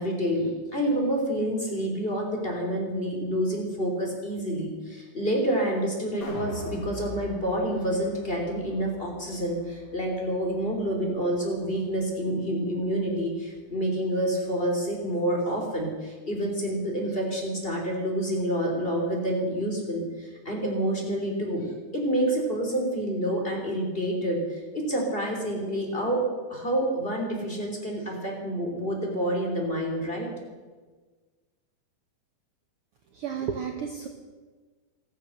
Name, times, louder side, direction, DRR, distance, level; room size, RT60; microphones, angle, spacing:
voice 1, 0.0-21.6 21.9-26.2 26.5-30.3, right 1 dB, 15° left, 0 dB, 3.2 m, -28 dB
sound 1, 6.2-12.4 12.8-12.9, left 2 dB, 40° left, 3.9 m, -43 dB
voice 2, 33.1-34.1, right 7 dB, 75° right, 4 dB, 1.3 m, -32 dB
15.0 x 14.5 x 6.5 m, 1.4 s
omnidirectional pair, 4.1 m